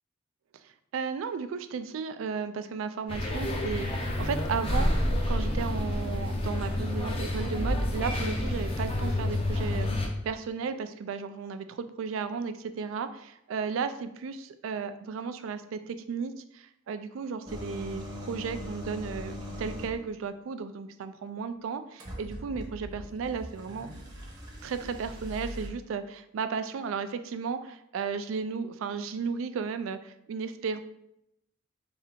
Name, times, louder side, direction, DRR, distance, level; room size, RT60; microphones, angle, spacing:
voice 1, 0.9-4.9 5.3-23.9 24.6-30.8, right 5 dB, 80° right, 10 dB, 0.3 m, -34 dB
sound 1, 3.1-10.1, left 1 dB, 30° left, 0.5 m, -29 dB
sound 2, 17.5-20.0 22.0-25.7, equal, 20° right, 0.7 m, -40 dB
3.3 x 2.7 x 3.6 m, 0.80 s
head